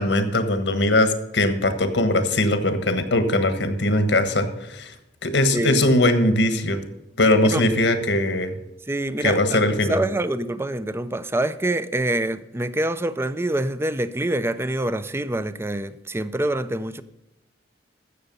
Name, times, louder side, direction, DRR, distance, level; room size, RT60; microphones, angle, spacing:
voice 1, 0.0-4.9 5.2-6.8 7.2-8.5 9.2-10.0, left 1 dB, 80° left, 1.4 m, -20 dB
voice 2, 5.5-5.9 7.4-7.7 8.9-9.6 9.9-17.0, right 1 dB, 15° right, 0.5 m, -26 dB
15.0 x 6.6 x 5.4 m
head